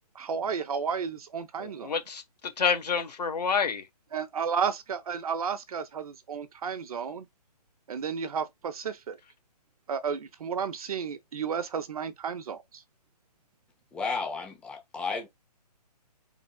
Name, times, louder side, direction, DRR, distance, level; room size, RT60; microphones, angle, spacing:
voice 1, 0.1-1.9 4.1-7.3 7.9-9.2 9.9-12.8, right 6 dB, 60° right, 0.9 m, -32 dB
voice 2, 1.6-3.8, left 6 dB, 75° left, 1.4 m, -28 dB
voice 3, 13.9-15.3, left 4 dB, 5° left, 0.6 m, -33 dB
4.2 x 3.7 x 2.3 m
hypercardioid pair, 145°, 21 cm